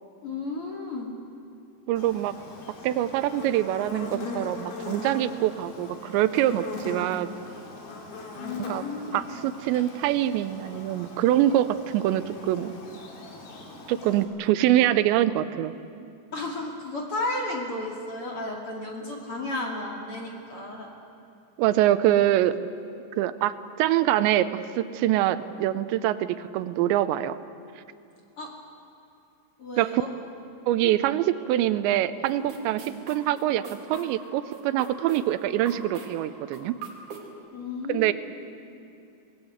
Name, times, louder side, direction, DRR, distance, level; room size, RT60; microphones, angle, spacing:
voice 1, 0.2-1.1 8.4-9.3 16.3-20.9 28.4-28.5 29.6-30.1 37.5-38.1, left 2 dB, 40° left, -1 dB, 2.5 m, -33 dB
voice 2, 1.9-2.3 2.8-7.3 8.6-8.8 9.1-12.7 13.9-15.7 21.6-22.5 23.2-24.5 24.8-27.4 29.8-30.0 30.7-33.6 33.9-36.7 37.9-38.1, right 13 dB, 85° right, 13 dB, 3.0 m, -24 dB
Buzz, 2.0-14.2, left 2 dB, 60° left, 4.3 m, -40 dB
sound 1, 32.3-37.3, right 3 dB, 50° right, 3.8 m, -42 dB
26.5 x 19.5 x 8.0 m, 2.5 s
omnidirectional pair, 5.1 m